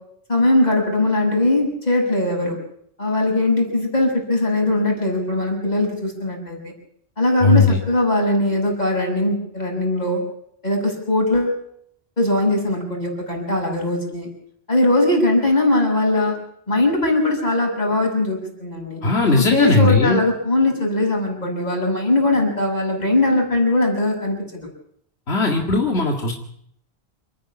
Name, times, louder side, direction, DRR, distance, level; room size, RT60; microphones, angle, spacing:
voice 1, 0.3-2.6 3.0-6.7 7.2-10.2 10.6-11.6 12.2-14.3 14.7-16.3 16.7-19.0 19.4-24.7, left 2 dB, 40° left, 0 dB, 7.2 m, -20 dB
voice 2, 7.4-7.8 19.0-20.2 25.3-26.3, left 3 dB, 85° left, 1 dB, 2.5 m, -17 dB
28.5 x 10.0 x 9.8 m, 0.69 s
omnidirectional pair, 1.1 m